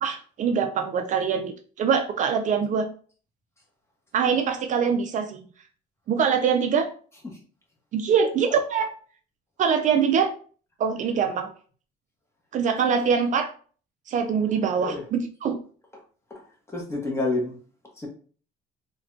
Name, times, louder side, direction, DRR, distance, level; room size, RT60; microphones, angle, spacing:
voice 1, 0.0-2.9 4.1-5.5 6.1-6.9 7.9-8.9 9.6-10.3 10.8-11.5 12.5-13.5 14.1-15.6, right 6 dB, 50° right, 6 dB, 0.4 m, -23 dB
voice 2, 16.7-17.6 18.0-18.1, left 2 dB, 15° left, -1 dB, 1.0 m, -29 dB
3.3 x 2.2 x 2.5 m, 0.41 s
cardioid pair, 110°, 17 cm